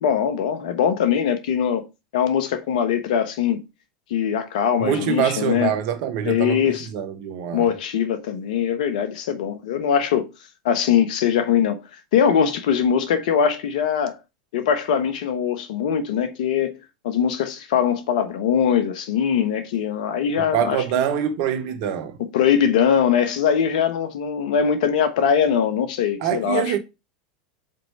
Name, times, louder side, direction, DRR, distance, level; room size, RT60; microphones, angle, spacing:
voice 1, 0.0-1.8 2.1-3.6 4.1-5.7 6.3-6.9 7.5-10.3 10.6-11.8 12.1-14.2 14.5-16.7 17.0-20.8 22.3-26.8, left 8 dB, 70° left, 1.2 m, -21 dB
voice 2, 4.8-7.7 20.4-22.2 26.2-26.8, right 9 dB, 60° right, 1.1 m, -24 dB
5.1 x 4.5 x 4.3 m
hypercardioid pair, 95°, 4 cm